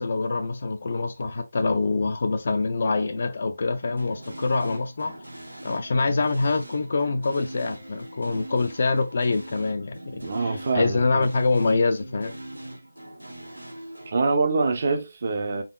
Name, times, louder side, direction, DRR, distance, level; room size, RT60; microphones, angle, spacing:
voice 1, 0.0-5.2 5.6-12.4, left 3 dB, 45° left, 0.3 m, -25 dB
sound 1, 3.8-14.1, right 1 dB, 80° right, 1.0 m, -41 dB
voice 2, 10.2-11.3 14.1-15.6, right 3 dB, 40° right, 0.7 m, -25 dB
3.8 x 3.6 x 2.3 m
figure-of-eight pair, 155°, 0 cm